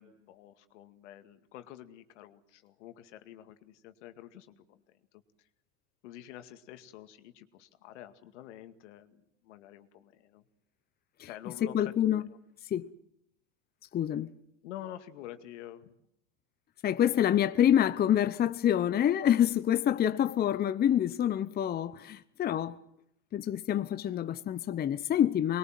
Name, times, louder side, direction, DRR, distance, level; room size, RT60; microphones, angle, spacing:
voice 1, 0.0-4.8 6.0-10.4 11.2-12.2 14.6-16.0, left 12 dB, 75° left, 2.2 m, -48 dB
voice 2, 11.6-12.2 12.7-12.9 13.9-14.3 16.8-22.8 23.3-25.6, left 10 dB, 25° left, 0.9 m, -27 dB
24.0 x 21.5 x 7.6 m
supercardioid pair, 115°, 36 cm